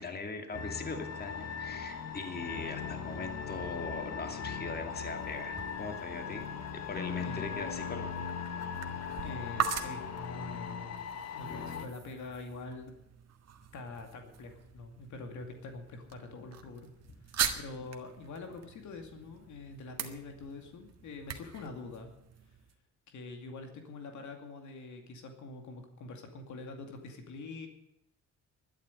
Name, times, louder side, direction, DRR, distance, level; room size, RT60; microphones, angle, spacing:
voice 1, 0.0-6.4 6.7-8.1, left 3 dB, 30° left, 5 dB, 2.6 m, -40 dB
sound 1, 0.5-11.9, left 6 dB, 55° left, 1.6 m, -39 dB
sound 2, 4.9-22.7, right 8 dB, 55° right, 1.8 m, -42 dB
voice 2, 7.2-7.6 9.2-12.9 13.7-16.9 17.2-22.1 23.1-27.7, left 3 dB, 70° left, 4 dB, 2.4 m, -45 dB
12.0 x 9.9 x 9.7 m, 0.83 s
cardioid pair, 90°, 30 cm